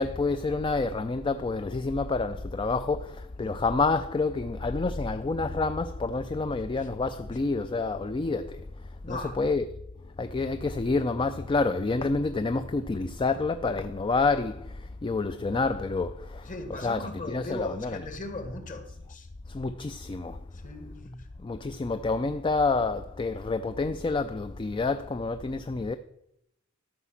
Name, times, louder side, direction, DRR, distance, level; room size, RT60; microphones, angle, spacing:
voice 1, 0.0-9.6 10.2-18.0 19.5-20.4 21.4-26.0, left 3 dB, 25° left, 0.4 m, -28 dB
voice 2, 9.0-9.5 16.4-19.3 20.5-21.3, left 2 dB, 40° left, 1.6 m, -38 dB
12.5 x 5.7 x 7.3 m
head